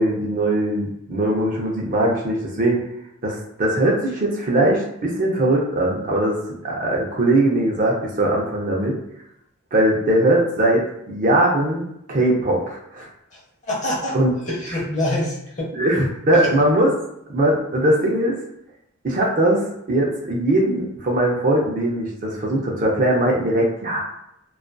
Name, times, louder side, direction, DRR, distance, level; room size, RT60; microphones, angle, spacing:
voice 1, 0.0-2.8 3.2-6.4 6.6-9.0 9.7-13.1 14.1-14.3 15.7-16.9 17.3-18.3 19.0-24.0, right 1 dB, 40° right, -2 dB, 0.5 m, -20 dB
voice 2, 13.3-14.2 14.4-15.7 16.3-16.5, left 1 dB, 35° left, -4 dB, 0.7 m, -26 dB
2.4 x 2.3 x 2.2 m, 0.79 s
head